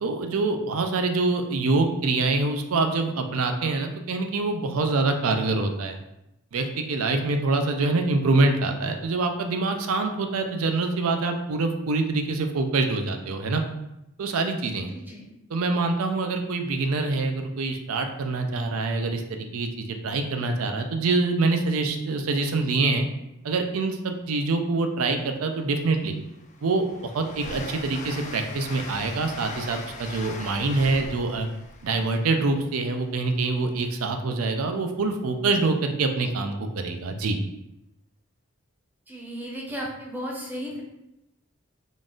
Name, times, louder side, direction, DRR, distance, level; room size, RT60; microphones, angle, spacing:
voice 1, 0.0-6.0 6.5-13.6 14.2-14.9 15.5-23.1 23.4-26.2 26.6-31.5 31.8-37.4, right 3 dB, 85° right, 5 dB, 0.5 m, -25 dB
voice 2, 14.9-15.2 39.1-40.8, equal, 10° right, -2 dB, 0.6 m, -34 dB
Train, 25.3-25.4 25.8-33.5, left 3 dB, 35° left, 0.4 m, -40 dB
3.8 x 2.5 x 3.7 m, 0.89 s
head